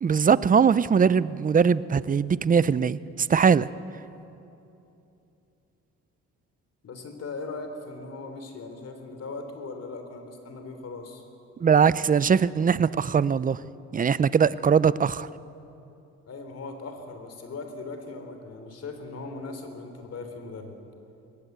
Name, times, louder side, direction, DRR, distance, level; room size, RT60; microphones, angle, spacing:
voice 1, 0.0-3.7 11.6-13.6 13.9-15.3, right 6 dB, 30° right, 18 dB, 0.6 m, -21 dB
voice 2, 6.8-11.2 16.3-20.8, left 3 dB, 55° left, 6 dB, 3.6 m, -39 dB
21.0 x 19.5 x 8.1 m, 2.8 s
cardioid pair, 90°, 30 cm